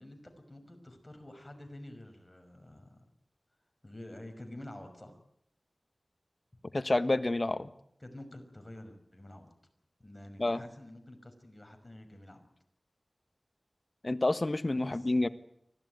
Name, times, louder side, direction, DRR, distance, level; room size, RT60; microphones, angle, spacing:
voice 1, 0.0-3.0 3.8-5.2 8.0-9.5 10.0-12.5 14.8-15.1, left 1 dB, 25° left, 6 dB, 5.8 m, -49 dB
voice 2, 6.7-7.7 10.4-10.6 14.0-15.3, left 2 dB, 45° left, 11 dB, 1.4 m, -28 dB
24.5 x 17.0 x 9.6 m, 0.74 s
wide cardioid pair, 45°, 0 cm